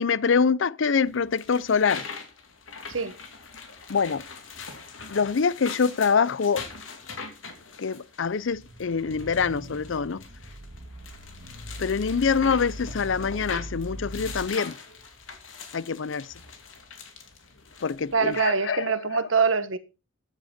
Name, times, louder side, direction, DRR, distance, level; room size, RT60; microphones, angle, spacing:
voice 1, 0.0-2.0 3.9-4.2 5.1-6.7 7.8-10.2 11.8-14.7 15.7-16.3 17.8-18.8, left 5 dB, 70° left, 0.5 m, -25 dB
sound 1, 1.1-18.5, left 5 dB, 85° left, 2.8 m, -42 dB
sound 2, 8.4-14.5, equal, 65° right, 1.9 m, -40 dB
voice 2, 18.1-19.8, right 5 dB, 90° right, 1.4 m, -24 dB
14.0 x 9.9 x 4.4 m
head